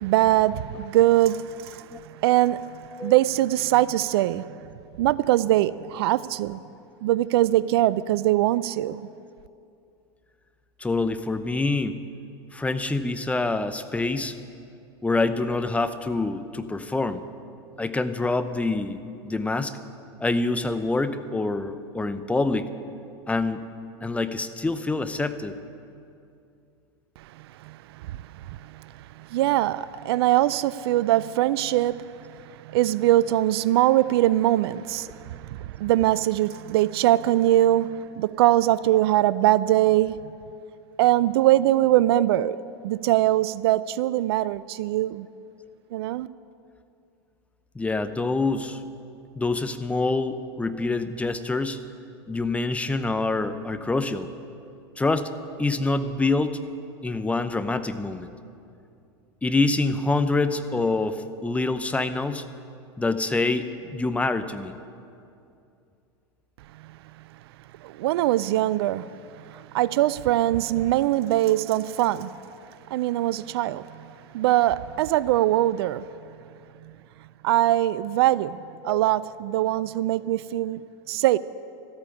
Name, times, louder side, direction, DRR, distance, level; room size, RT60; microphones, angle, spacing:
voice 1, 0.0-1.8 2.2-2.6 3.0-4.4 5.0-6.6 7.0-9.0 27.7-27.8 28.1-28.2 29.3-32.0 32.7-35.4 35.8-40.2 41.0-42.6 42.8-45.3 45.9-46.3 67.8-69.1 69.5-72.3 72.9-73.8 74.3-76.1 77.4-78.6 78.8-80.8 81.1-81.4, right 14 dB, 65° right, 0.4 m, -22 dB
voice 2, 10.8-12.0 12.5-14.3 15.0-17.2 17.8-19.8 20.2-22.7 23.3-23.6 24.0-25.6 42.1-42.5 47.7-48.8 49.4-51.8 52.3-54.3 55.0-55.3 55.6-56.6 57.0-58.3 59.4-62.4 63.0-64.7 78.8-79.0, left 3 dB, 10° left, 0.7 m, -26 dB
13.5 x 8.8 x 9.8 m
hypercardioid pair, 100°, 14 cm